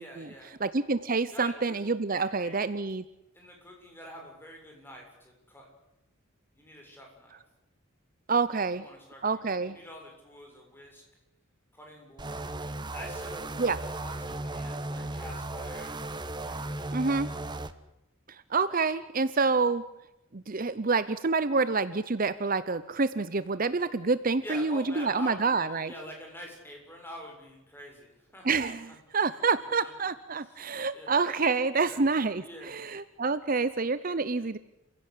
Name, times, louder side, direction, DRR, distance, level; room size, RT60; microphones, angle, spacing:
voice 1, 0.0-0.6 1.3-2.7 3.3-5.7 6.5-7.4 8.7-11.0 11.7-12.5 12.8-13.5 14.0-16.0 16.3-17.0 24.4-29.0 29.3-29.4 29.8-29.9 30.4-30.7 30.9-31.2 31.9-32.0 32.4-32.8, equal, 10° left, 1 dB, 7.0 m, -46 dB
voice 2, 0.6-3.0 8.3-8.8 9.2-9.8 13.6-13.8 16.9-17.3 18.3-19.8 20.3-25.9 28.4-34.6, right 4 dB, 40° right, 14 dB, 0.8 m, -28 dB
sound 1, 12.2-17.7, right 2 dB, 20° right, 1.2 m, -36 dB
29.5 x 16.0 x 8.4 m, 0.90 s
head